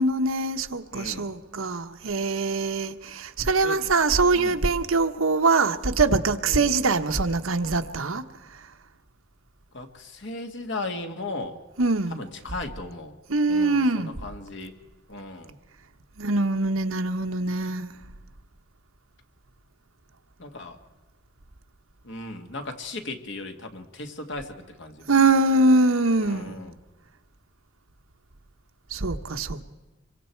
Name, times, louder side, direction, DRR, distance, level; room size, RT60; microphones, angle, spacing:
voice 1, 0.0-8.2 11.8-12.2 13.3-14.1 16.2-17.9 25.1-26.5 28.9-29.6, right 3 dB, 85° right, 1.2 m, -23 dB
voice 2, 0.9-1.3 3.6-3.8 4.3-4.7 6.4-6.7 9.7-11.6 12.1-13.2 13.5-14.8 15.1-15.6 20.4-20.8 22.0-25.1 26.2-26.8, left 2 dB, 60° left, 2.0 m, -36 dB
26.5 x 23.5 x 4.6 m
head